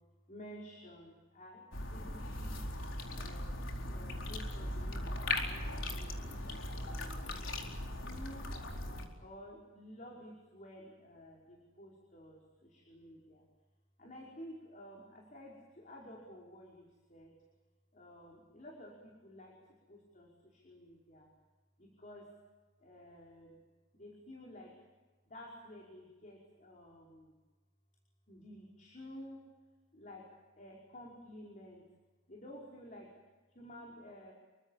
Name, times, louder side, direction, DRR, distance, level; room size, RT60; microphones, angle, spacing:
voice 1, 0.3-2.7 3.2-3.6 3.9-6.2 6.8-7.4 8.0-8.5 9.2-13.4 14.0-17.4 17.9-21.3 21.8-22.3 22.8-23.6 23.9-24.7 25.3-27.4 28.3-29.5 29.9-30.3 30.5-31.9 32.3-33.1 33.5-34.3, equal, 40° left, -2 dB, 5.2 m, -52 dB
sound 1, 1.7-9.0, left 1 dB, 75° left, 4.4 m, -39 dB
28.0 x 24.5 x 7.4 m, 1.3 s
head